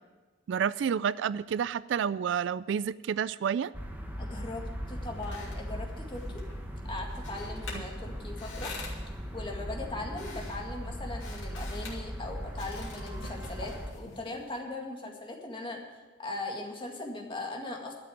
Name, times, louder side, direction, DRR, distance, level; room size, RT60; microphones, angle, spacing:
voice 1, 0.5-3.7, right 7 dB, 70° right, 18 dB, 0.3 m, -29 dB
sound 1, 3.7-13.9, equal, 10° right, 1.3 m, -39 dB
voice 2, 4.1-6.4 6.8-8.7 9.3-15.8 16.2-17.9, left 2 dB, 25° left, 1 dB, 1.9 m, -39 dB
sound 2, 4.9-14.6, left 3 dB, 90° left, 2.8 m, -47 dB
12.0 x 6.7 x 9.3 m, 1.2 s
head